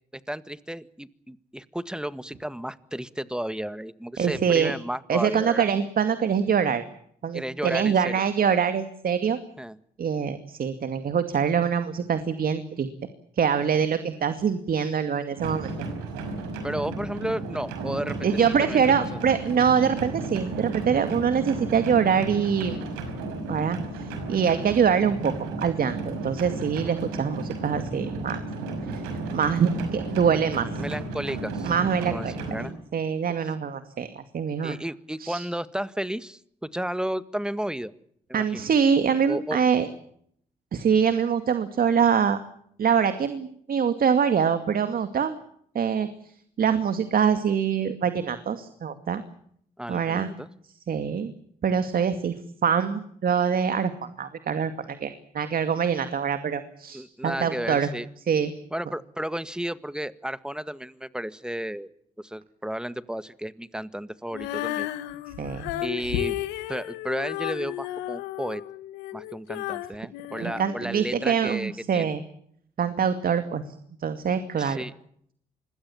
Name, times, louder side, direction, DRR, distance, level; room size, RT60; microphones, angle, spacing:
voice 1, 0.1-5.7 7.3-8.2 9.6-9.8 16.6-18.3 18.6-18.8 30.8-31.7 32.0-32.7 34.6-37.9 38.3-38.7 39.2-39.6 49.8-50.5 56.9-58.1 58.7-61.9 62.2-64.9 65.8-66.4 66.7-68.6 69.1-72.1 74.6-74.9, right 1 dB, 5° right, 14 dB, 1.9 m, -33 dB
voice 2, 4.2-4.7 5.1-6.8 7.2-9.4 10.0-12.9 13.4-15.7 18.2-22.8 23.5-25.3 25.6-28.4 29.3-30.7 31.6-32.3 32.9-34.7 35.2-35.4 38.3-39.9 40.7-42.4 42.8-45.4 45.7-46.3 46.6-49.2 49.9-50.3 50.9-51.3 51.6-52.3 52.6-53.9 54.2-57.9 58.3-58.5 65.4-65.8 70.4-72.2 72.8-73.6 74.0-74.8, right 7 dB, 60° right, 10 dB, 2.3 m, -24 dB
Water mill - rattling box, 15.4-32.7, right 2 dB, 90° right, 5.8 m, -33 dB
Female singing, 64.3-71.4, left 15 dB, 85° left, 1.5 m, -33 dB
26.0 x 21.5 x 7.3 m, 0.67 s
hypercardioid pair, 45°, 17 cm